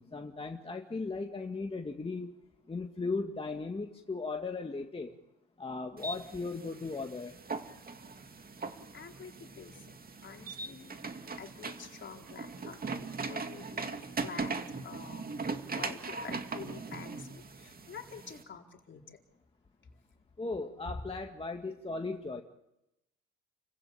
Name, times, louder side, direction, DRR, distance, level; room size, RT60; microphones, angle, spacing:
voice 1, 0.0-2.3 2.7-5.1 5.6-7.3 20.4-22.4, left 3 dB, 20° left, 3 dB, 2.0 m, -37 dB
sound 1, 6.0-18.4, right 4 dB, 30° right, 2.4 m, -40 dB
voice 2, 8.9-9.7 10.2-10.9 11.4-14.5 14.8-15.3 15.7-19.0, left 6 dB, 35° left, 2 dB, 4.3 m, -47 dB
30.0 x 15.5 x 8.7 m, 0.91 s
supercardioid pair, 80°, 31 cm